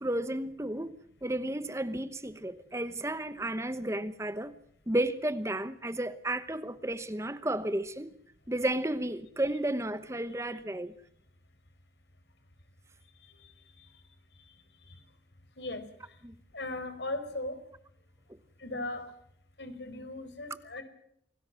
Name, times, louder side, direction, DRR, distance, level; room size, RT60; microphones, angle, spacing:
voice 1, 0.0-1.0 1.2-4.5 4.9-8.1 8.5-10.9 16.2-16.3, right 1 dB, 15° right, 0.9 m, -32 dB
voice 2, 16.5-17.6 18.6-19.1 19.6-20.8, left 2 dB, 75° left, 4.8 m, -37 dB
27.5 x 18.5 x 7.6 m
head